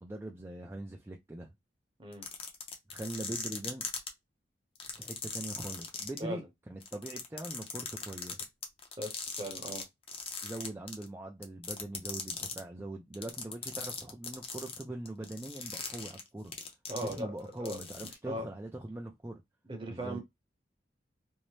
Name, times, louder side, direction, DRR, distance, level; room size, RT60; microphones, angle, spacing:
voice 1, 0.0-1.5 2.9-3.9 5.0-8.5 10.4-16.5 17.0-19.4 19.9-20.2, right 1 dB, 15° right, 0.3 m, -42 dB
sound 1, 2.1-4.1 4.8-6.2 6.8-9.8 10.1-11.1 11.4-12.6 13.1-17.4 17.7-18.1, left 6 dB, 30° left, 0.6 m, -39 dB
voice 2, 9.0-9.8 16.9-17.3 17.6-17.8 18.2-18.5 19.7-20.2, equal, 30° right, 0.8 m, -38 dB
2.6 x 2.0 x 3.1 m
head